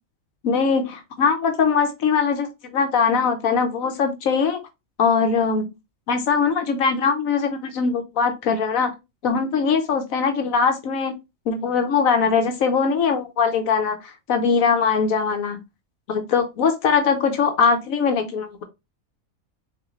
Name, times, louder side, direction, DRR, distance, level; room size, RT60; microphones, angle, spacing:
voice 1, 0.4-4.6 5.0-5.7 6.1-8.9 9.2-11.2 11.5-15.6 16.1-18.6, left 5 dB, 80° left, 1.2 m, -21 dB
4.0 x 3.7 x 3.0 m
omnidirectional pair, 1.4 m